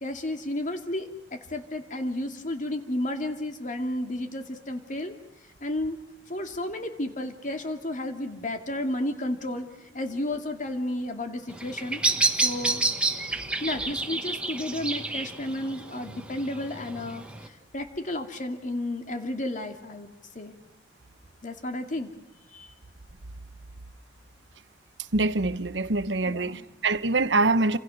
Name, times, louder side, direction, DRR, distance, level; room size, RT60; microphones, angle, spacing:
voice 1, 0.0-5.1 5.6-6.0 6.3-12.0 12.4-12.8 13.6-20.6 21.4-22.1 22.5-22.7 26.2-26.6, left 1 dB, 45° left, 2.5 m, -32 dB
Bird vocalization bird call bird song, 11.5-17.5, right 2 dB, 5° right, 1.7 m, -29 dB
voice 2, 25.1-27.8, right 3 dB, 80° right, 1.1 m, -24 dB
29.5 x 26.5 x 6.4 m
head